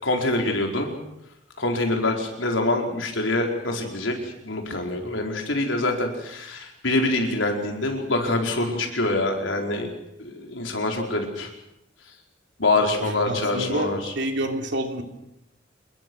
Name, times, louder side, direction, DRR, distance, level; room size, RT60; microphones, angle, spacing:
voice 1, 0.0-0.9 1.6-9.9 10.2-11.5 12.6-14.1, left 2 dB, 80° left, 2 dB, 4.8 m, -25 dB
voice 2, 13.0-15.0, right 1 dB, 65° right, 4 dB, 3.5 m, -28 dB
27.5 x 21.5 x 6.4 m, 0.84 s
head